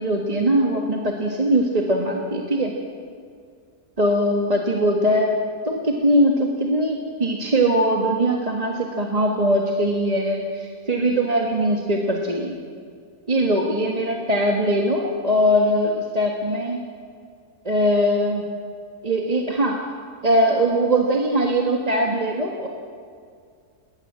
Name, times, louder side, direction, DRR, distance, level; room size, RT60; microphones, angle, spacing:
voice 1, 0.0-2.7 4.0-5.4 5.6-12.6 13.3-16.8 17.6-18.4 19.0-19.8 20.2-22.7, equal, 25° right, 0 dB, 1.5 m, -21 dB
19.5 x 19.5 x 7.6 m, 2.2 s
omnidirectional pair, 1.7 m